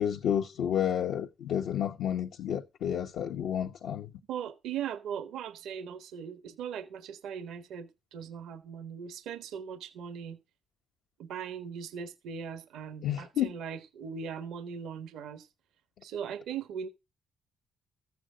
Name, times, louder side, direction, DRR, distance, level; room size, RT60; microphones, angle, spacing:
voice 1, 0.0-4.1 13.0-13.5, left 9 dB, 80° left, 1.0 m, -30 dB
voice 2, 4.3-10.4 11.2-15.5 16.0-16.9, right 7 dB, 85° right, 1.3 m, -39 dB
14.0 x 8.0 x 5.0 m
cardioid pair, 90°, 0 cm